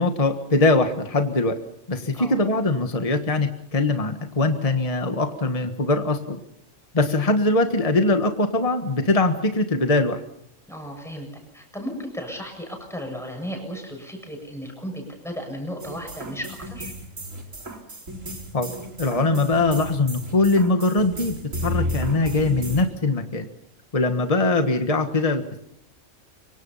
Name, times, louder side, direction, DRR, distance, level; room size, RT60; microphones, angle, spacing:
voice 1, 0.0-1.5 1.9-6.4 6.9-10.2 18.5-18.7 19.0-21.4 21.6-23.5 23.9-25.6, left 2 dB, 30° left, 7 dB, 1.6 m, -22 dB
voice 2, 10.7-11.3 11.5-16.9, equal, ahead, 2 dB, 7.5 m, -35 dB
sound 1, 15.8-22.8, equal, 75° right, 4.5 m, -33 dB
25.5 x 24.0 x 5.7 m, 0.76 s
omnidirectional pair, 1.3 m